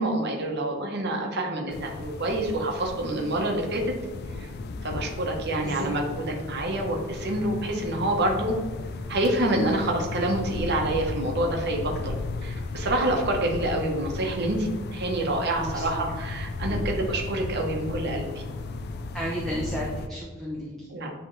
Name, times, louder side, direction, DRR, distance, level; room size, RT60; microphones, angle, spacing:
voice 1, 0.0-3.8 4.4-4.5 4.8-8.5 9.1-18.3 20.9-21.1, right 1 dB, 50° right, 1 dB, 1.1 m, -27 dB
sound 1, 1.7-20.1, left 3 dB, 45° left, 0.4 m, -35 dB
voice 2, 15.6-16.1 16.7-16.8 19.1-20.9, equal, ahead, -5 dB, 0.8 m, -33 dB
10.0 x 3.4 x 3.2 m, 1.3 s
head